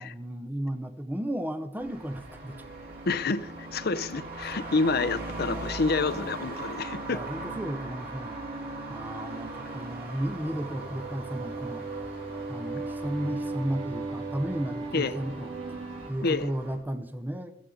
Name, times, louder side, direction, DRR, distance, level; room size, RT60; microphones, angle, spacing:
voice 1, 0.0-2.6 7.1-8.4 8.9-11.9 12.5-15.5 16.1-17.5, right 1 dB, 10° right, 0.7 m, -34 dB
Traffic noise roadway noise, 1.8-16.7, right 3 dB, 55° right, 4.0 m, -42 dB
sound 1, 2.1-16.1, right 2 dB, 85° right, 3.2 m, -39 dB
voice 2, 3.1-7.2 14.9-15.1 16.2-16.5, left 3 dB, 55° left, 0.7 m, -28 dB
15.0 x 14.0 x 3.8 m
head